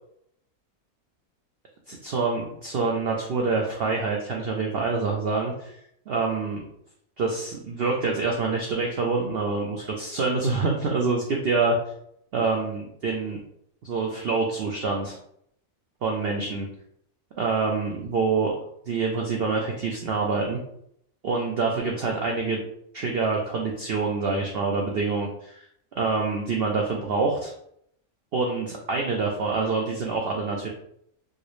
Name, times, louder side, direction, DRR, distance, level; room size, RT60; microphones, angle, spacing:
voice 1, 1.9-5.8 6.1-6.6 7.2-11.8 12.3-13.4 13.8-15.2 16.0-16.7 17.4-18.5 18.9-20.6 21.2-22.6 22.9-25.6 26.0-27.5 28.3-30.7, right 4 dB, 80° right, 0 dB, 0.5 m, -26 dB
4.6 x 2.0 x 3.0 m, 0.72 s
omnidirectional pair, 1.6 m